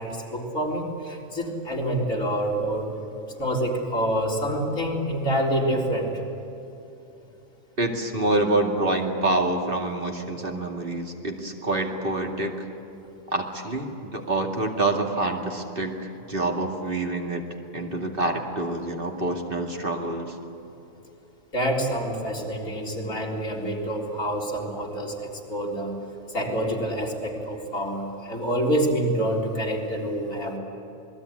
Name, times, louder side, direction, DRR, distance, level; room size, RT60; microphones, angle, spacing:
voice 1, 0.0-2.9 3.4-6.2 21.5-25.9 26.3-30.6, right 1 dB, 80° left, -2 dB, 4.3 m, -27 dB
voice 2, 7.8-12.7 13.3-17.4 17.7-20.3, right 2 dB, 40° right, 1 dB, 2.6 m, -27 dB
27.5 x 21.0 x 9.8 m, 2.9 s
omnidirectional pair, 1.4 m